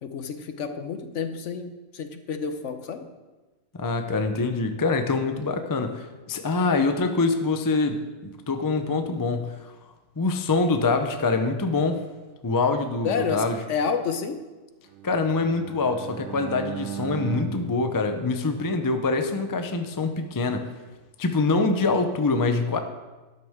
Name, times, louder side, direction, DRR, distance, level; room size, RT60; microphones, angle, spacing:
voice 1, 0.0-3.1 13.0-14.4, left 6 dB, 65° left, 8 dB, 1.1 m, -29 dB
voice 2, 3.7-9.7 10.2-12.0 12.4-13.6 15.0-20.7 21.2-22.8, left 3 dB, 25° left, 6 dB, 0.4 m, -25 dB
Bowed string instrument, 14.9-19.1, right 11 dB, 80° right, 1.0 m, -38 dB
12.5 x 9.5 x 3.6 m, 1.2 s
omnidirectional pair, 1.4 m